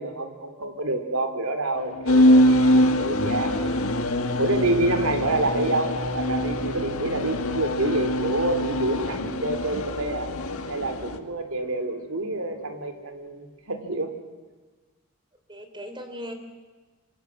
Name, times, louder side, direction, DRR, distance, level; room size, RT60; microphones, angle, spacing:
voice 1, 0.0-3.7 4.4-10.3 10.7-14.1, right 2 dB, 75° right, 7 dB, 3.2 m, -27 dB
sound 1, 1.7-13.6, left 1 dB, 70° left, 2.1 m, -46 dB
sound 2, 2.1-11.2, left 1 dB, 90° left, 1.7 m, -23 dB
voice 2, 4.8-5.2 15.5-16.3, equal, 25° right, 7 dB, 3.4 m, -38 dB
26.0 x 25.5 x 7.7 m, 1.3 s
head